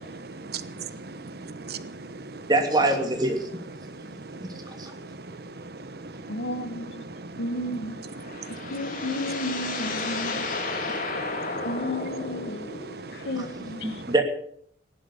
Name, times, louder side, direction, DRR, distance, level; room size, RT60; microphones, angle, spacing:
voice 1, 0.2-2.5 3.8-5.1 5.4-7.5 8.2-9.2 10.2-11.9 12.2-13.3 13.8-14.1, right 3 dB, 60° right, 1.2 m, -40 dB
voice 2, 2.5-3.4 4.8-4.9 13.4-13.5 13.8-14.2, right 2 dB, 25° right, 2.8 m, -23 dB
voice 3, 6.3-7.0 7.4-7.9 8.7-10.5 11.6-12.7 13.2-13.9, left 1 dB, 85° left, 1.7 m, -32 dB
sound 1, 7.9-13.1, left 3 dB, 50° left, 3.0 m, -33 dB
17.5 x 11.5 x 7.2 m
head